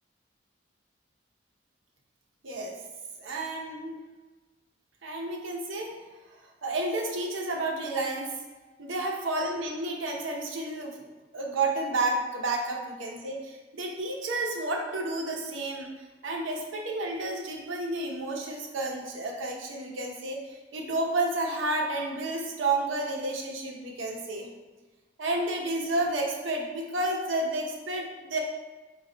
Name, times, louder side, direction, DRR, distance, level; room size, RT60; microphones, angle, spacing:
voice 1, 2.4-2.8 3.2-4.0 5.0-5.9 6.6-8.3 8.8-11.1 11.3-15.9 16.2-24.5 25.2-28.4, right 2 dB, 85° right, 0 dB, 0.7 m, -31 dB
4.2 x 2.3 x 3.8 m, 1.3 s
head